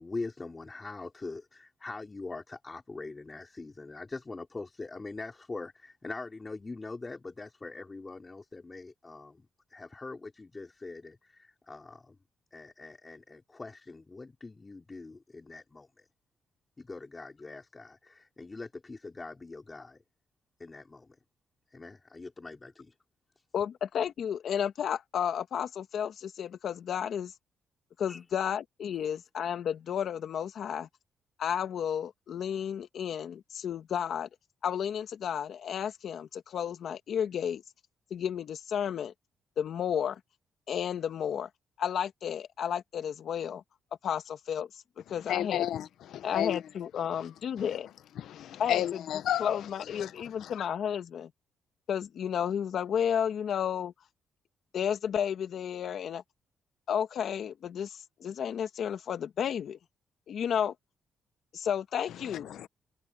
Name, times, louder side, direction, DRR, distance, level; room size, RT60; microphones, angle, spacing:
voice 1, 0.0-12.1 12.5-15.9 16.8-20.0 20.6-21.1 21.7-22.9 28.1-28.2, left 3 dB, 20° left, 4.3 m, -43 dB
voice 2, 23.5-27.3 28.0-30.9 31.4-34.3 34.6-37.6 38.1-39.1 39.6-40.2 40.7-41.5 41.8-43.6 44.0-44.7 45.0-45.7 46.2-47.9 48.6-49.0 49.4-51.3 51.9-53.9 54.7-56.2 56.9-59.8 60.3-60.7 61.5-62.5, left 8 dB, 60° left, 1.7 m, -32 dB
voice 3, 45.3-45.9 46.1-46.6 48.2-49.6 50.0-50.1 50.4-50.5 62.5-62.7, left 11 dB, 75° left, 1.0 m, -32 dB
cardioid pair, 135°, 0 cm